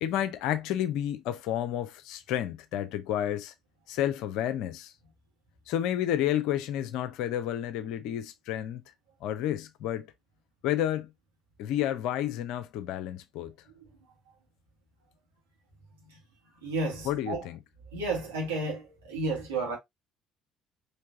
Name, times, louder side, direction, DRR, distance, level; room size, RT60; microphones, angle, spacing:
voice 1, 0.0-3.5 3.9-4.9 5.7-8.8 9.2-10.1 10.6-11.1 11.6-13.5 17.0-17.6, left 11 dB, 65° left, 0.6 m, -30 dB
voice 2, 16.6-17.5 17.9-19.8, right 2 dB, 80° right, 1.8 m, -32 dB
4.5 x 3.2 x 2.6 m
figure-of-eight pair, 50°, 0 cm